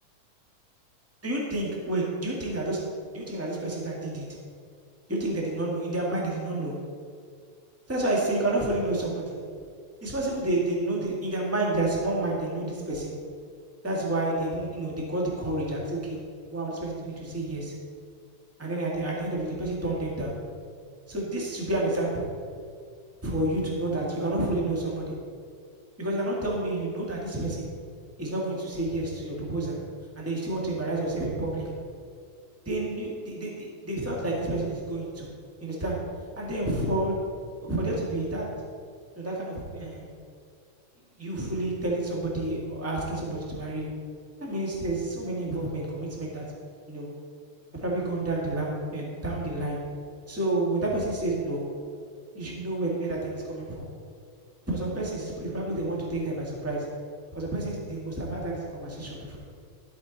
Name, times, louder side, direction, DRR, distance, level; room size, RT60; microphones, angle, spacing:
voice 1, 1.2-2.8 3.1-4.2 5.1-6.7 7.9-9.3 10.0-13.1 13.8-16.2 16.5-17.7 18.6-20.3 21.1-22.3 23.2-25.1 26.0-27.7 28.2-29.8 30.1-31.7 32.6-35.3 35.6-36.0 36.4-37.2 37.6-38.5 39.2-40.1 41.2-43.9 44.4-46.4 46.9-47.1 47.7-49.8 50.3-51.6 52.3-53.8 54.7-56.8 57.3-59.4, right 2 dB, 5° right, -3 dB, 1.1 m, -29 dB
12.5 x 7.9 x 4.1 m, 2.2 s
omnidirectional pair, 3.5 m